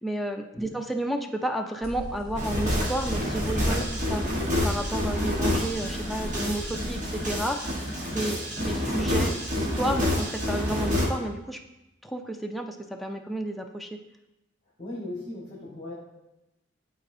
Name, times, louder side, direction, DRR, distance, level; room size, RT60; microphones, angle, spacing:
voice 1, 0.0-3.8 4.1-4.2 4.6-7.6 8.1-8.4 8.6-11.6 12.0-13.9, right 1 dB, ahead, 2 dB, 0.4 m, -31 dB
sound 1, 1.8-7.4, equal, 15° right, 2.4 m, -38 dB
sound 2, 2.4-11.1, left 1 dB, 40° right, 1.3 m, -28 dB
voice 2, 8.1-8.5 14.8-15.9, left 2 dB, 30° left, -5 dB, 1.3 m, -38 dB
11.0 x 4.1 x 2.6 m, 0.95 s
head